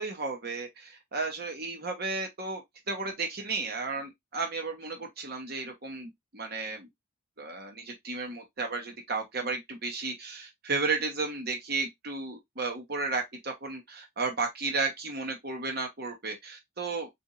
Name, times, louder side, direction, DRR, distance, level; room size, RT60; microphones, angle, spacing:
voice 1, 0.0-6.9 7.4-17.1, right 3 dB, 50° right, 1.1 m, -33 dB
4.1 x 2.7 x 3.7 m
head